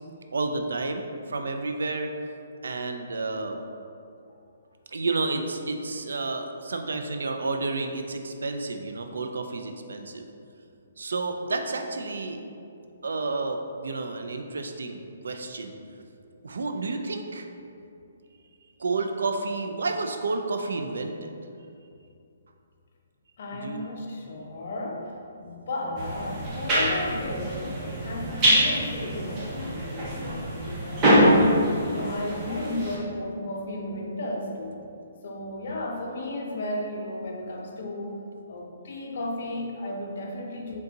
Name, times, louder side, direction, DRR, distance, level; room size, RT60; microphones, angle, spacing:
voice 1, 0.3-2.1 2.6-3.6 4.9-10.3 11.0-12.4 13.0-15.7 16.4-17.5 18.8-21.3 23.5-23.8, right 3 dB, 90° right, 5 dB, 0.4 m, -30 dB
voice 2, 23.4-27.7 28.0-34.8 35.2-38.2 38.5-40.8, left 1 dB, 50° left, 0 dB, 0.6 m, -34 dB
sound 1, 26.0-33.0, equal, 20° right, 0.7 m, -24 dB
3.8 x 3.5 x 2.8 m, 2.5 s
hypercardioid pair, 170°, 0 cm